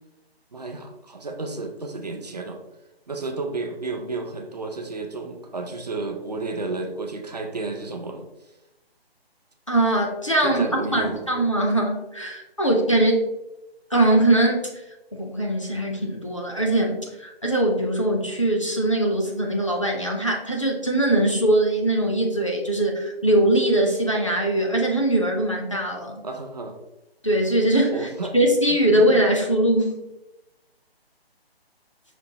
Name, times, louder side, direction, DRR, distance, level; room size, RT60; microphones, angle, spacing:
voice 1, 0.5-2.6 3.1-8.2 10.4-11.2 26.2-26.7 27.9-28.3 29.0-29.2, right 3 dB, 45° right, 4 dB, 0.4 m, -32 dB
voice 2, 9.7-10.6 10.9-13.3 13.9-14.6 15.1-26.2 27.2-30.0, right 1 dB, 30° left, 0 dB, 0.4 m, -21 dB
5.2 x 2.6 x 2.7 m, 0.93 s
figure-of-eight pair, 160°, 31 cm